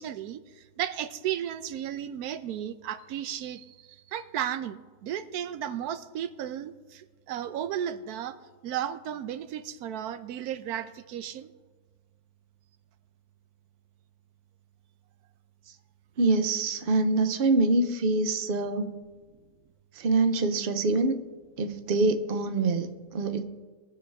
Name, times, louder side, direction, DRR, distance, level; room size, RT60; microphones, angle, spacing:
voice 1, 0.0-8.4 8.6-11.5, right 10 dB, 90° right, 12 dB, 1.1 m, -34 dB
voice 2, 16.2-18.9 19.9-21.2 21.6-23.4, right 3 dB, 45° right, 8 dB, 0.8 m, -25 dB
21.0 x 7.1 x 3.5 m, 1.3 s
omnidirectional pair, 1.6 m